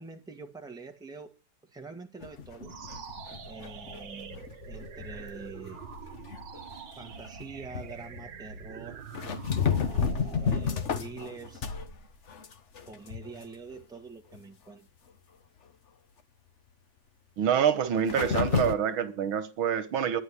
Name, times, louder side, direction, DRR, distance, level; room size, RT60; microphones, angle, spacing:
voice 1, 0.0-1.3 1.6-2.8 3.5-5.8 7.0-9.0 9.9-11.7 12.8-14.9, right 4 dB, ahead, 1.4 m, -45 dB
sound 1, 2.2-6.8 7.2-7.4 7.7-8.3 9.1-12.0 12.3-13.4 13.7-13.8 14.3-14.4 18.1-18.7, left 6 dB, 45° left, 1.1 m, -32 dB
sound 2, 2.6-12.1, right 7 dB, 65° right, 2.0 m, -45 dB
voice 2, 17.4-20.2, right 8 dB, 85° right, 2.0 m, -26 dB
11.0 x 9.3 x 9.9 m
omnidirectional pair, 2.2 m